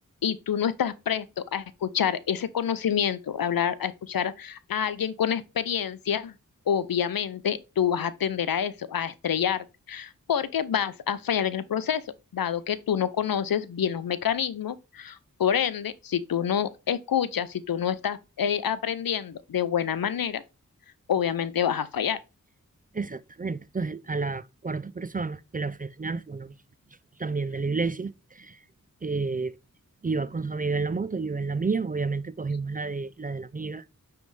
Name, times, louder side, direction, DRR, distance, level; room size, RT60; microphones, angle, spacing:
voice 1, 0.2-6.3 6.7-12.0 12.3-20.4 21.1-22.2, left 8 dB, 80° left, 0.6 m, -27 dB
voice 2, 22.9-26.5 27.2-28.6 29.0-29.6 30.0-33.8, right 4 dB, 25° right, 0.4 m, -30 dB
9.2 x 3.4 x 3.2 m
cardioid pair, 40°, 34 cm